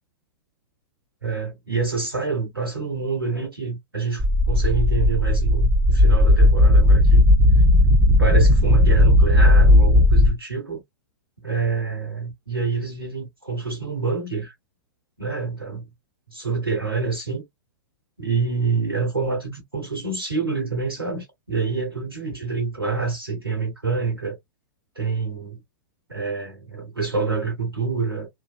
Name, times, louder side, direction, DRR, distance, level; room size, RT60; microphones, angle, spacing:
voice 1, 1.2-7.3 8.2-10.8 11.4-14.5 15.2-15.9 16.3-17.4 18.2-24.4 24.9-25.6 26.1-28.3, right 4 dB, 90° right, 1.1 m, -27 dB
sound 1, 4.2-10.3, left 1 dB, 15° right, 0.7 m, -15 dB
2.8 x 2.1 x 2.4 m
figure-of-eight pair, 105°, 12 cm